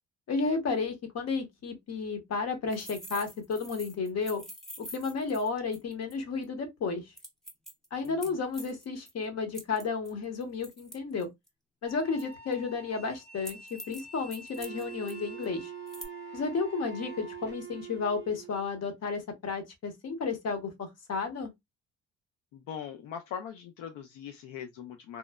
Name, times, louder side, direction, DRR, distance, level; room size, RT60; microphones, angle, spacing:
voice 1, 0.3-4.4 4.8-7.1 7.9-11.3 11.8-15.7 16.3-21.5, left 4 dB, 55° left, 1.0 m, -32 dB
sound 1, 2.7-6.1 6.4-6.5 7.2-9.1 9.5-11.5 12.2-12.5 13.5-14.0 14.3-15.1 15.4-15.5 15.9-16.1, equal, ahead, 0.6 m, -45 dB
voice 2, 8.0-8.4 22.5-25.2, left 8 dB, 90° left, 0.5 m, -41 dB
sound 2, 11.8-17.5, left 3 dB, 35° left, 0.8 m, -49 dB
Wind instrument woodwind instrument, 14.6-18.7, right 11 dB, 45° right, 0.4 m, -43 dB
3.0 x 2.1 x 2.2 m
cardioid pair, 90°, 30 cm